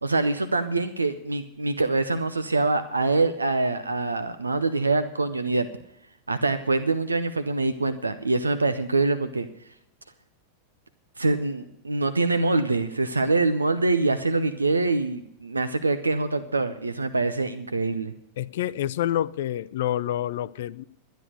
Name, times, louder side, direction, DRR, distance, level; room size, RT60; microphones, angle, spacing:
voice 1, 0.0-5.7 6.3-9.5 11.2-18.1, right 3 dB, 80° right, 11 dB, 0.6 m, -24 dB
voice 2, 18.4-20.8, left 12 dB, 55° left, 18 dB, 0.5 m, -28 dB
12.5 x 10.0 x 6.6 m, 0.78 s
figure-of-eight pair, 90°, 0 cm